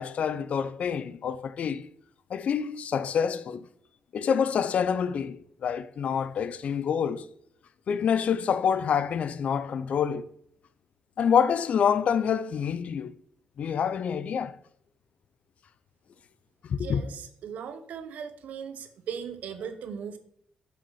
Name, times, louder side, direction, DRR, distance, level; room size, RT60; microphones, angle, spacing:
voice 1, 0.0-1.8 2.3-3.7 4.1-7.3 7.9-10.3 11.2-13.1 13.6-14.5 16.6-17.0, left 7 dB, 65° left, 0.5 m, -27 dB
voice 2, 16.8-20.2, right 7 dB, 85° right, 0.9 m, -38 dB
6.9 x 6.2 x 5.5 m
cardioid pair, 110°, 2 cm